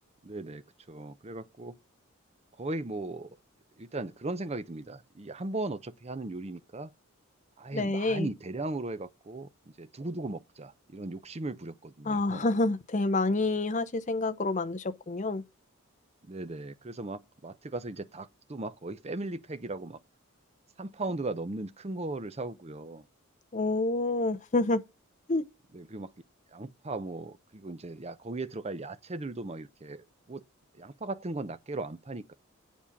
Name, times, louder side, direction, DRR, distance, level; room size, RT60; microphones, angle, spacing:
voice 1, 0.2-0.6 0.9-1.8 2.6-3.4 3.8-6.9 7.6-9.5 9.8-12.5 16.3-20.0 20.8-23.0 25.7-26.1 26.5-30.4 30.7-32.3, right 2 dB, 30° right, 0.6 m, -37 dB
voice 2, 7.7-8.3 12.0-15.4 23.5-24.8 25.3-25.5, left 2 dB, 35° left, 0.7 m, -28 dB
8.5 x 7.3 x 5.8 m
head